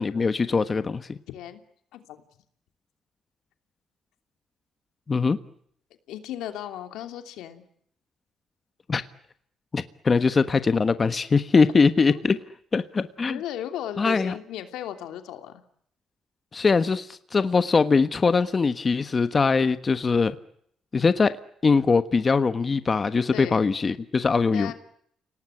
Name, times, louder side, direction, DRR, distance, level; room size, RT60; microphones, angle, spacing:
voice 1, 0.0-1.2 5.1-5.4 8.9-9.0 9.7-12.4 12.7-13.4 14.0-14.4 16.5-20.4 20.9-21.3 21.6-24.7, left 4 dB, 35° left, 11 dB, 1.3 m, -22 dB
voice 2, 1.3-1.6 1.9-2.2 6.1-7.6 12.1-12.2 13.3-15.6 23.3-23.6 24.5-24.7, left 11 dB, 90° left, 7 dB, 2.9 m, -36 dB
30.0 x 18.5 x 9.8 m, 0.70 s
cardioid pair, 90°, 0 cm